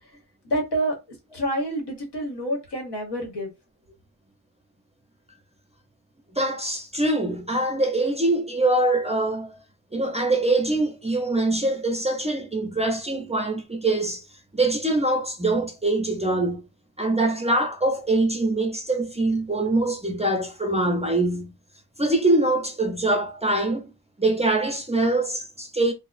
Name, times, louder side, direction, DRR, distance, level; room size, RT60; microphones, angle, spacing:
voice 1, 0.4-0.9 1.3-3.5, right 1 dB, 75° left, 1.2 m, -27 dB
voice 2, 6.3-9.6 9.9-14.2 14.5-16.6 17.0-21.5 22.0-23.9 24.2-25.9, right 2 dB, 15° right, 0.4 m, -23 dB
2.8 x 2.0 x 2.4 m
wide cardioid pair, 125°, 40 cm